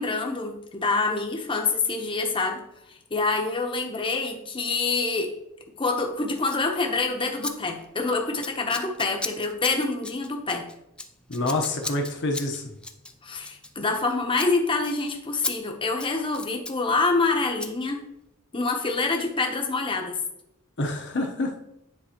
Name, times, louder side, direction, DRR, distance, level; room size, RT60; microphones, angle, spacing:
voice 1, 0.0-2.6 2.9-5.3 5.8-10.7 13.2-18.0 18.5-20.2, left 3 dB, 25° left, 3 dB, 0.9 m, -26 dB
Scissors, 6.4-6.7 7.4-7.5 7.8-8.1 8.4-14.1 14.3-14.5 14.8-14.9 15.4-15.5 15.9-16.8 17.6-17.7, left 2 dB, 5° left, 0.3 m, -36 dB
voice 2, 11.3-12.6 20.8-21.5, left 2 dB, 55° left, 2 dB, 1.0 m, -27 dB
10.0 x 4.1 x 2.9 m, 0.83 s
head